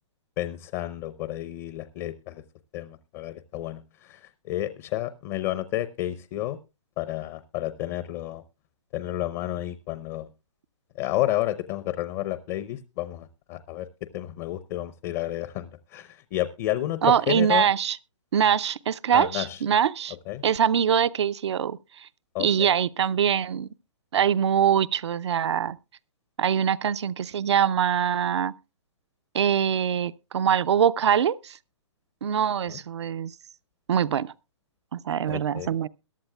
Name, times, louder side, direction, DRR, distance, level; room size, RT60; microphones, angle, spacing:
voice 1, 0.4-2.4 2.7-6.6 7.0-8.4 8.9-10.3 10.9-13.9 14.1-17.7 19.1-19.6 20.3-20.4 22.3-22.7 32.7-32.8 35.3-35.7, left 14 dB, 35° left, 0.7 m, -31 dB
voice 2, 17.0-18.0 18.3-20.1 20.4-22.1 22.4-23.7 24.1-25.8 26.4-28.5 29.3-31.6 32.2-33.3 33.9-34.3 34.9-35.9, right 8 dB, 65° right, 0.6 m, -23 dB
21.5 x 11.5 x 2.3 m
hypercardioid pair, 130°, 15 cm